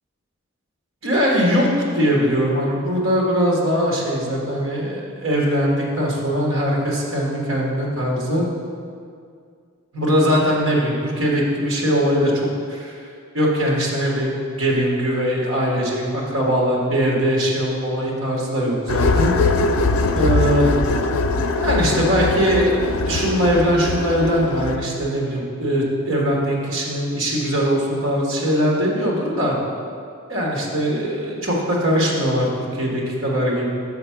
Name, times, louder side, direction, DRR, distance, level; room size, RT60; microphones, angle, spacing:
voice 1, 1.0-1.7 1.9-8.4 9.9-13.0 13.3-19.3 20.1-20.7 21.6-22.8 23.1-29.6 30.3-32.4 32.7-33.7, equal, 70° right, -2 dB, 1.4 m, -21 dB
sound 1, 18.9-24.8, left 3 dB, 75° left, 0.4 m, -21 dB
5.8 x 4.6 x 5.7 m, 2.3 s
head